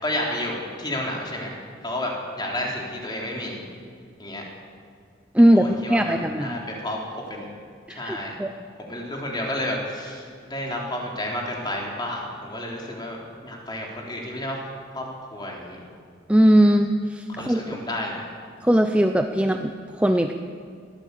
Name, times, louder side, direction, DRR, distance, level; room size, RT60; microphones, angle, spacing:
voice 1, 0.0-1.6 1.8-3.6 4.2-4.4 5.5-7.5 7.9-8.4 8.8-14.6 14.9-15.8 17.3-18.2, left 1 dB, 20° left, -1 dB, 3.7 m, -31 dB
voice 2, 5.3-6.6 7.9-8.5 16.3-17.8 18.6-20.4, equal, 5° right, 6 dB, 0.6 m, -20 dB
21.5 x 15.0 x 8.4 m, 2.3 s
head